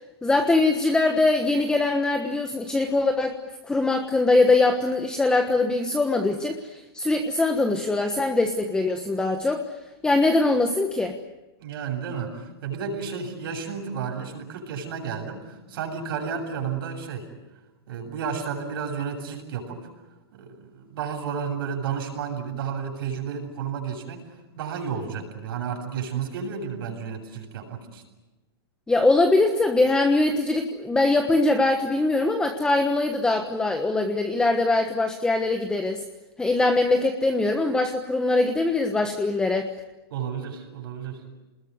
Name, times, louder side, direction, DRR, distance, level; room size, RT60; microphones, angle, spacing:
voice 1, 0.2-3.4 3.6-9.7 10.0-11.1 28.9-36.0 36.4-39.7, left 2 dB, 5° left, 5 dB, 1.3 m, -22 dB
voice 2, 11.6-17.3 17.9-19.8 20.3-24.2 24.5-28.0 40.1-41.2, right 6 dB, 65° right, 3 dB, 7.6 m, -32 dB
27.0 x 20.5 x 9.6 m, 1.1 s
hypercardioid pair, 155°, 13 cm